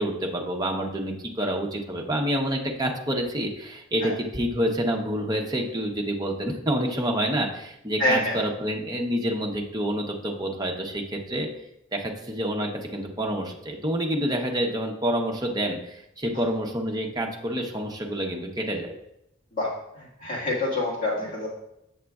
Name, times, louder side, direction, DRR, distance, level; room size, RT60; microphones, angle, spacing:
voice 1, 0.0-11.5 11.9-18.9, equal, 20° right, 1 dB, 0.8 m, -28 dB
voice 2, 8.0-8.4 19.5-19.7 20.0-21.5, left 1 dB, 45° left, -7 dB, 1.8 m, -26 dB
8.6 x 6.4 x 2.4 m, 0.83 s
head